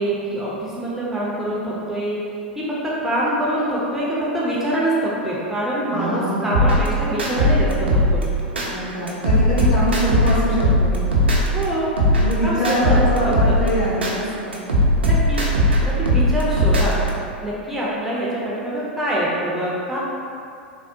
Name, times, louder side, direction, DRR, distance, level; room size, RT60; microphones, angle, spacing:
voice 1, 0.0-2.2 2.6-8.3 11.5-11.9 12.4-12.6 12.8-13.0 13.5-13.6 15.0-15.4 15.8-17.0 17.4-20.0, right 1 dB, 5° right, -7 dB, 0.4 m, -24 dB
voice 2, 5.9-6.7 8.7-11.0 12.2-14.5, equal, 55° left, -8 dB, 1.0 m, -24 dB
sound 1, 6.5-8.7 9.1-11.6 12.0-14.1 14.5-17.1, equal, 75° right, 0.5 m, -18 dB
3.4 x 2.0 x 2.6 m, 2.5 s
figure-of-eight pair, 90°, 6 cm